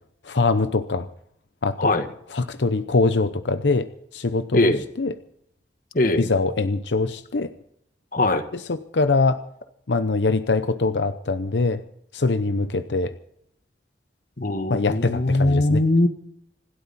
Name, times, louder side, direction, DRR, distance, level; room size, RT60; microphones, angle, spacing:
voice 1, 0.2-1.1 1.6-1.9 2.3-5.2 6.1-7.5 8.5-9.4 9.9-11.8 12.1-13.1 14.7-15.8, left 3 dB, 85° left, 11 dB, 0.7 m, -23 dB
voice 2, 5.9-6.3 8.1-8.4 14.4-16.1, left 2 dB, 50° left, 9 dB, 1.5 m, -20 dB
26.5 x 12.0 x 4.2 m, 0.72 s
head